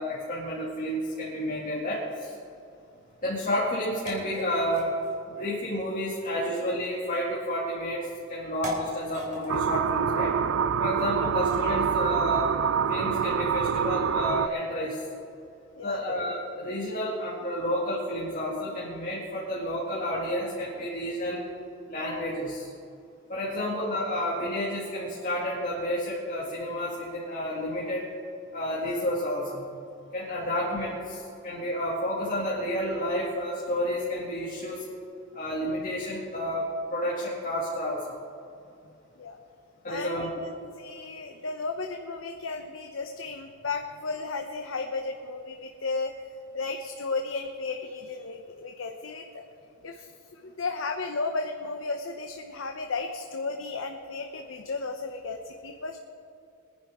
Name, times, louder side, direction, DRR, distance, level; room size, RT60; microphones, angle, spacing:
voice 1, 0.0-2.3 3.2-4.9 5.3-8.0 8.3-10.3 10.8-12.5 12.9-15.0 15.8-21.4 21.9-22.7 23.3-28.1 28.5-29.6 30.1-34.8 35.3-36.6 36.9-38.1 39.8-40.3, equal, 45° left, -5 dB, 2.4 m, -30 dB
sound 1, 2.8-11.4, equal, 40° right, 3.3 m, -44 dB
sound 2, 9.5-14.5, right 7 dB, 70° right, 0.4 m, -26 dB
voice 2, 39.9-40.5 40.8-46.1 46.5-49.4 49.8-56.0, left 3 dB, 75° left, 4 dB, 0.9 m, -34 dB
24.5 x 10.5 x 3.7 m, 2.6 s
head